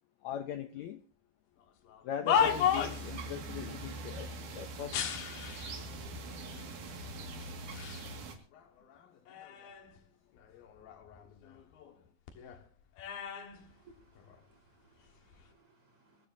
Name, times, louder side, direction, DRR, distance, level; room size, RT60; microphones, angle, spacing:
voice 1, 0.2-1.0 2.0-5.0, left 9 dB, 70° left, 1.8 m, -40 dB
sound 1, 1.9-3.2 4.9-5.8 6.6-6.7 7.4-8.1 8.5-10.0 10.4-12.0 12.3-14.4 15.2-15.4, left 8 dB, 90° left, 3.4 m, -34 dB
sound 2, 2.4-8.4, right 2 dB, 65° right, 3.5 m, -43 dB
voice 2, 13.5-16.3, right 3 dB, 40° right, 5.0 m, -64 dB
22.5 x 15.0 x 2.7 m
omnidirectional pair, 4.0 m